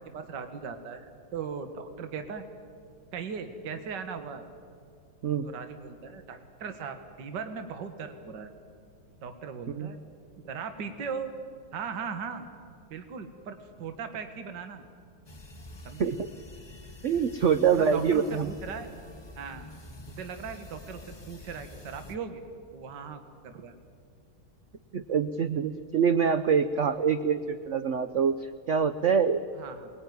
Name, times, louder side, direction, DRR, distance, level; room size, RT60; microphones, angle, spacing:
voice 1, 0.1-2.4 3.1-4.4 5.4-8.5 9.2-10.0 10.4-11.3 11.7-12.4 12.9-14.8 15.8-16.1 17.7-18.9 19.4-19.7 20.1-22.4 22.7-23.7 26.8-27.0 29.6-29.9, right 6 dB, 60° right, 8 dB, 2.0 m, -38 dB
sound 1, 15.3-22.2, left 2 dB, 25° left, 0.6 m, -47 dB
voice 2, 17.0-18.5 24.9-29.4, right 6 dB, 85° right, 11 dB, 0.6 m, -25 dB
23.0 x 20.5 x 9.4 m, 2.2 s
omnidirectional pair, 2.2 m